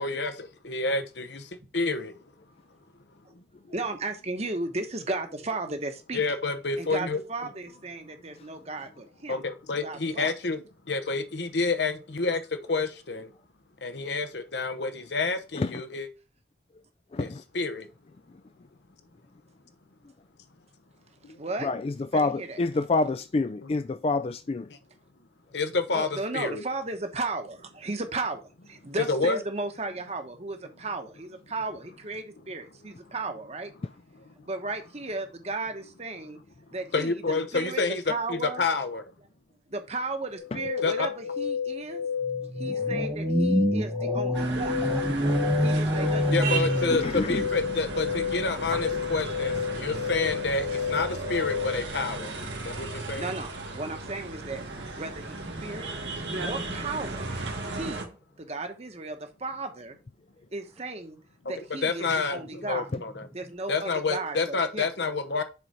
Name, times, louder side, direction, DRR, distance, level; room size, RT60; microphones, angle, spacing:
voice 1, 0.0-2.2 6.1-7.2 9.3-13.3 13.8-16.1 17.2-17.9 21.2-21.4 24.7-24.8 25.5-26.6 29.1-29.4 34.1-34.3 36.9-39.1 40.8-41.1 46.3-52.3 52.6-53.3 61.4-61.5 61.8-63.3 63.7-65.4, left 3 dB, 80° left, 1.0 m, -29 dB
voice 2, 3.7-6.2 6.8-9.4 9.8-10.3 21.4-21.7 22.1-22.6 25.9-33.7 34.5-36.4 36.7-37.2 37.5-37.8 38.1-38.6 39.7-42.0 42.6-44.8 45.6-47.2 53.1-54.6 55.0-55.9 56.4-57.3 57.7-60.0 60.5-61.2 61.4-62.9 63.3-64.9, right 3 dB, 35° right, 1.1 m, -35 dB
voice 3, 21.6-24.7 46.9-47.4, left 3 dB, 35° left, 0.3 m, -27 dB
sound 1, 40.4-51.9, left 7 dB, 65° right, 2.4 m, -31 dB
voice 4, 42.2-47.0 48.7-48.8 55.5-56.5, right 1 dB, 15° right, 0.6 m, -28 dB
sound 2, 44.3-58.0, right 3 dB, 90° right, 1.7 m, -35 dB
7.0 x 4.1 x 4.7 m
head